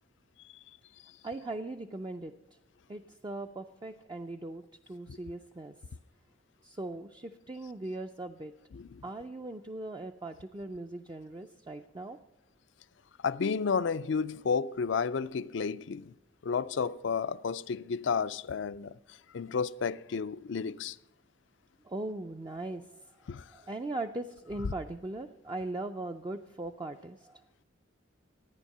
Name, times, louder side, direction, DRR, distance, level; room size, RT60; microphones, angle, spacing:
voice 1, 1.2-2.3 2.9-5.7 6.6-8.5 9.0-12.2 21.8-22.9 23.5-27.4, right 2 dB, 20° right, 0.4 m, -39 dB
voice 2, 13.2-16.1 16.4-18.9 19.3-21.0 23.3-23.4, left 5 dB, 65° left, 0.4 m, -32 dB
14.0 x 9.8 x 6.5 m
head